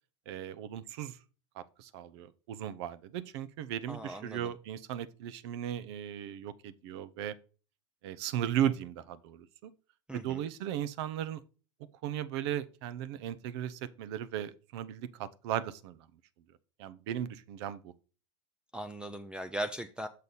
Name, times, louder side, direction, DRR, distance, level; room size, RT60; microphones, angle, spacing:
voice 1, 0.3-1.2 1.6-7.3 8.0-9.7 10.1-11.4 12.0-16.1 16.8-17.9, right 10 dB, 60° right, 0.7 m, -36 dB
voice 2, 3.9-4.5 10.1-10.5 18.7-20.1, right 1 dB, 5° right, 0.4 m, -39 dB
6.6 x 5.3 x 4.0 m
hypercardioid pair, 100°, 16 cm